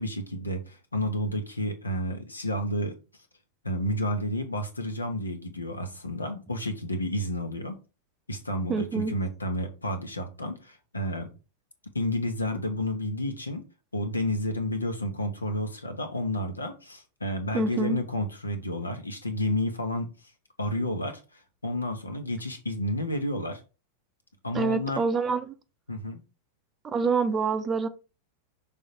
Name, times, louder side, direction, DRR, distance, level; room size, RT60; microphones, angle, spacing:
voice 1, 0.0-2.9 3.6-7.8 8.3-11.3 11.9-13.6 13.9-20.1 20.6-23.6 24.4-25.0 25.9-26.2, left 1 dB, 80° left, 1.2 m, -31 dB
voice 2, 8.7-9.1 17.5-18.0 24.5-25.5 26.8-27.9, right 5 dB, 20° right, 0.6 m, -26 dB
6.2 x 3.5 x 4.4 m
figure-of-eight pair, 90°, 0 cm